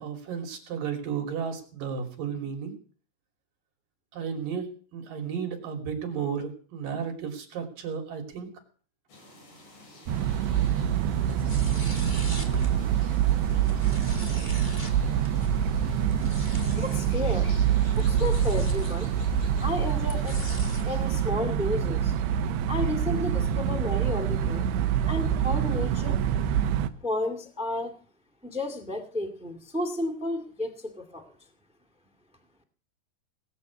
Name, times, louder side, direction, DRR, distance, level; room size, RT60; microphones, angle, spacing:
voice 1, 0.0-2.8 4.1-8.5, right 7 dB, 60° right, 4 dB, 4.3 m, -33 dB
sound 1, 9.1-21.3, left 2 dB, 55° left, 7.0 m, -50 dB
sound 2, 10.1-26.9, right 9 dB, 90° right, 3.0 m, -26 dB
sound 3, 11.1-20.9, left 2 dB, 20° left, 1.2 m, -42 dB
voice 2, 16.8-17.5 18.0-19.1 19.6-20.4 20.8-22.2 22.7-24.7 25.1-26.2 27.0-27.9 28.4-31.3, left 1 dB, 10° right, 6 dB, 0.3 m, -32 dB
19.0 x 7.5 x 8.2 m, 0.42 s
omnidirectional pair, 4.7 m